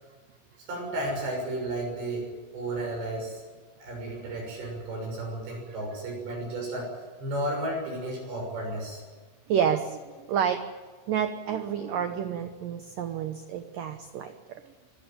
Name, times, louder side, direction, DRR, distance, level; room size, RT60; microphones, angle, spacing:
voice 1, 0.6-3.4 3.8-9.0, right 1 dB, 60° right, 0 dB, 8.7 m, -33 dB
voice 2, 9.5-10.6 11.1-14.6, right 8 dB, 85° right, 8 dB, 1.9 m, -29 dB
25.5 x 16.0 x 9.2 m, 1.5 s
omnidirectional pair, 5.6 m